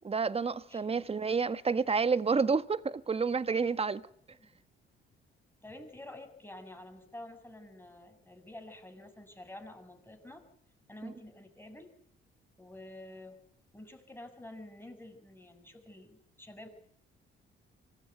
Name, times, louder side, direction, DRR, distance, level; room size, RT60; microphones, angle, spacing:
voice 1, 0.0-4.0 11.0-11.1, right 5 dB, 30° right, 1.4 m, -29 dB
voice 2, 5.6-10.4 10.9-11.9 12.6-13.4 13.7-16.7, left 1 dB, 10° left, 7.0 m, -49 dB
25.0 x 19.5 x 9.5 m
cardioid pair, 90°, 20 cm